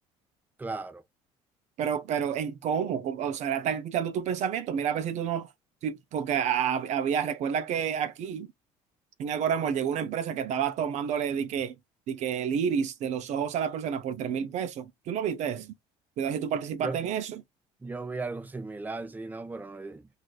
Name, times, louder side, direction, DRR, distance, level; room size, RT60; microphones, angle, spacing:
voice 1, 0.6-1.0 16.8-17.0 17.8-20.1, right 3 dB, 10° right, 0.7 m, -36 dB
voice 2, 1.8-5.5 5.8-8.5 9.2-11.7 12.1-15.7 16.2-17.4, right 8 dB, 60° right, 0.5 m, -29 dB
6.1 x 2.5 x 2.3 m
supercardioid pair, 90°, 14 cm